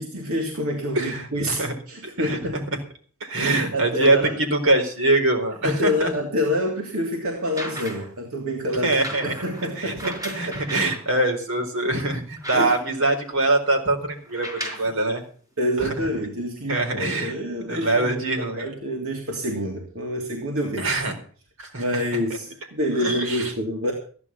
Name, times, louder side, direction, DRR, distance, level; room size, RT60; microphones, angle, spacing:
voice 1, 0.0-2.8 3.4-4.4 5.6-8.9 9.2-10.6 12.5-12.7 14.7-14.9 15.6-21.0 21.8-23.9, equal, 80° right, 0 dB, 3.1 m, -27 dB
voice 2, 1.0-1.3 1.6-1.7 2.0-2.4 3.2-4.2 4.5-6.1 8.8-9.3 9.8-9.9 10.3-15.2 15.8-15.9 16.7-17.3 17.7-18.7 20.8-21.2 21.6-21.8 23.0-23.5, right 2 dB, 65° right, 3 dB, 4.3 m, -23 dB
sound 1, 7.4-8.2 8.9-11.0 11.6-11.7 12.0-13.1 14.2-14.9 15.9-16.0, equal, 15° right, 4.9 m, -36 dB
15.0 x 11.0 x 5.7 m, 0.44 s
head